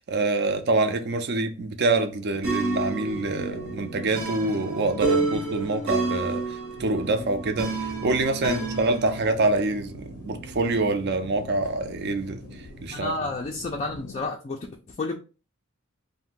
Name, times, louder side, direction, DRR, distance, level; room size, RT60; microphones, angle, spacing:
voice 1, 0.0-6.4 6.8-12.4 12.8-13.1, right 2 dB, 50° right, 0.4 m, -26 dB
sound 1, 2.3-14.3, left 4 dB, 90° left, 0.5 m, -45 dB
sound 2, 2.4-9.3, right 3 dB, 65° right, 0.8 m, -30 dB
sound 3, 6.7-14.0, equal, 85° right, 1.1 m, -43 dB
voice 2, 12.9-15.2, left 3 dB, 30° left, 0.3 m, -31 dB
2.6 x 2.1 x 3.6 m
head